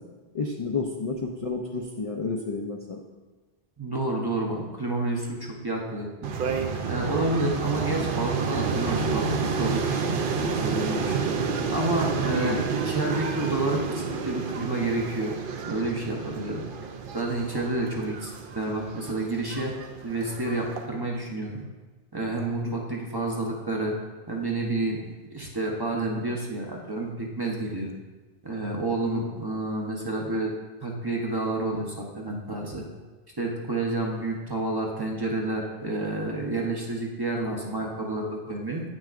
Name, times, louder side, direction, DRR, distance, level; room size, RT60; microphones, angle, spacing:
voice 1, 0.3-3.0 12.3-12.7 22.6-22.8 29.0-29.3, left 3 dB, 45° left, 0 dB, 0.5 m, -31 dB
voice 2, 3.8-6.3 6.8-9.2 9.6-10.0 10.3-11.4 11.7-15.3 15.7-16.6 17.1-19.7 20.0-21.6 22.1-24.0 24.3-27.9 28.4-30.5 30.8-32.9 33.4-38.8, right 2 dB, 25° right, -1 dB, 0.7 m, -29 dB
sound 1, 6.2-20.9, right 5 dB, 60° right, 0.7 m, -30 dB
8.6 x 6.1 x 2.5 m, 1.3 s
omnidirectional pair, 1.0 m